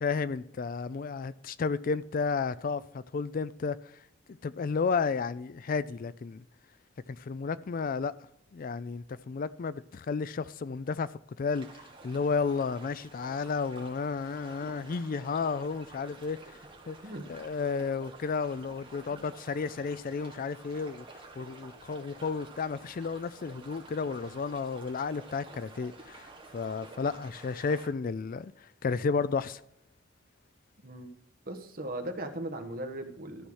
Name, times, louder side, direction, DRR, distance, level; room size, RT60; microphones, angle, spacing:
voice 1, 0.0-3.8 4.4-6.4 7.1-8.1 8.5-11.1 11.4-16.6 16.9-17.0 17.3-21.1 21.4-29.6, left 5 dB, 45° left, 0.4 m, -32 dB
sound 1, 11.5-27.9, right 3 dB, 25° right, 1.9 m, -50 dB
voice 2, 31.4-33.5, right 1 dB, 50° right, 1.4 m, -38 dB
13.0 x 5.7 x 6.3 m
head